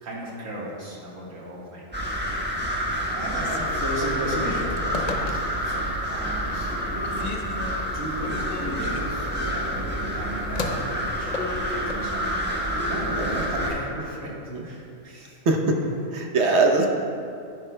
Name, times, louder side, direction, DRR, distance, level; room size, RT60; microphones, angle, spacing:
voice 1, 0.0-1.9 3.1-14.3 14.6-15.4, right 1 dB, 85° right, -4 dB, 2.0 m, -35 dB
sound 1, 1.9-13.7, equal, 10° right, 1.0 m, -28 dB
Telephone, 3.3-5.8 6.3-6.8 7.0-12.1, left 3 dB, 45° left, 0.5 m, -35 dB
voice 2, 15.4-15.8 16.1-16.9, right 3 dB, 60° right, 2 dB, 1.1 m, -21 dB
10.5 x 10.0 x 2.2 m, 2.5 s
omnidirectional pair, 1.3 m